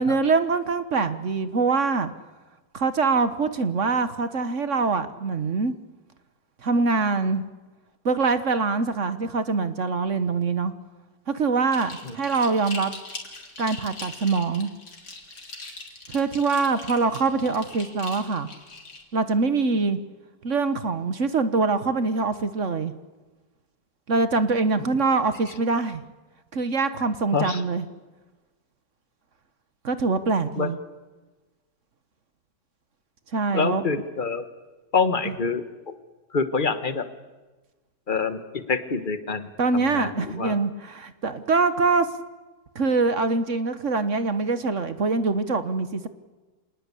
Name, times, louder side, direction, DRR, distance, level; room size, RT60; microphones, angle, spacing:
voice 1, 0.0-2.1 2.7-5.7 6.6-7.4 8.0-10.7 11.3-12.9 13.6-14.7 16.1-18.5 19.1-20.0 20.4-22.9 24.1-26.0 26.5-27.8 29.8-30.8 33.3-33.8 35.2-35.3 39.6-42.1 42.7-46.1, right 4 dB, 45° right, 11 dB, 1.5 m, -24 dB
sound 1, 11.7-19.0, left 3 dB, 70° left, 4.1 m, -41 dB
voice 2, 33.5-34.5 34.9-35.9 36.3-37.0 38.1-39.5 39.7-40.6, left 4 dB, 30° left, 10 dB, 1.5 m, -26 dB
26.5 x 19.0 x 8.4 m, 1.2 s
omnidirectional pair, 1.9 m